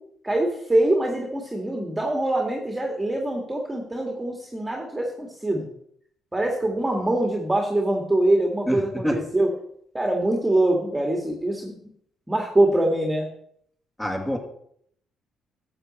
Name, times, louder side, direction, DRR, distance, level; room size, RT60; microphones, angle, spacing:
voice 1, 0.2-5.6 6.3-9.5 9.9-11.8 12.3-13.3, right 1 dB, 10° right, 0 dB, 2.0 m, -24 dB
voice 2, 8.7-9.2 14.0-14.4, equal, 15° left, 2 dB, 2.4 m, -26 dB
12.5 x 7.6 x 4.3 m, 0.67 s
cardioid pair, 90°, 0 cm